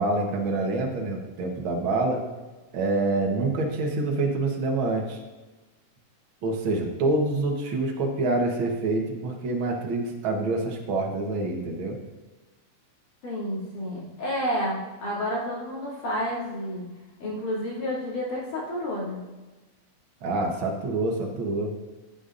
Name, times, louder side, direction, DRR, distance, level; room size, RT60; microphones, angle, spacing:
voice 1, 0.0-2.2 2.7-5.2 6.4-12.0 20.2-21.7, right 2 dB, 50° right, 1 dB, 1.7 m, -26 dB
voice 2, 13.2-16.8 17.2-19.2, equal, 85° left, -6 dB, 4.4 m, -30 dB
14.5 x 8.3 x 2.6 m, 1.2 s
omnidirectional pair, 3.5 m